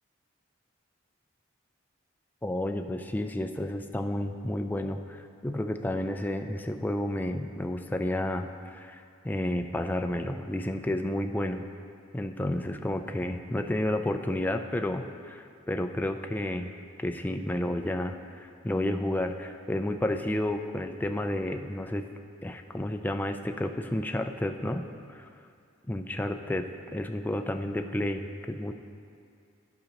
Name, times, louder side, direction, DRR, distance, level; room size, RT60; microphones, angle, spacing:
voice 1, 2.4-11.7 12.1-16.7 17.0-22.1 22.4-25.3 25.9-28.7, left 1 dB, 10° left, 6 dB, 0.3 m, -31 dB
14.5 x 5.2 x 2.9 m, 2.5 s
head